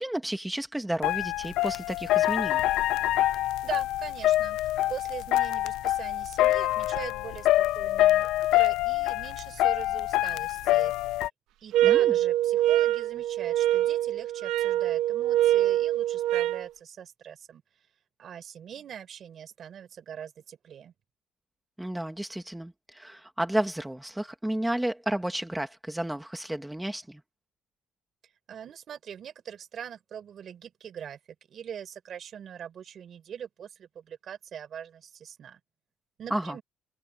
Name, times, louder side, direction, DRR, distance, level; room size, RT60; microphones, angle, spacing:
voice 1, 0.0-2.7 11.8-12.2 21.8-27.2 36.3-36.6, right 1 dB, 5° right, 2.0 m, -32 dB
sound 1, 1.0-11.3, left 15 dB, 80° left, 0.4 m, -25 dB
voice 2, 3.3-4.6 4.9-10.9 11.6-17.6 18.2-20.9 28.5-31.2 31.5-35.6 36.2-36.6, right 8 dB, 40° right, 4.7 m, -42 dB
sound 2, 11.7-16.7, right 13 dB, 80° right, 1.6 m, -24 dB
cardioid pair, 155°, 0 cm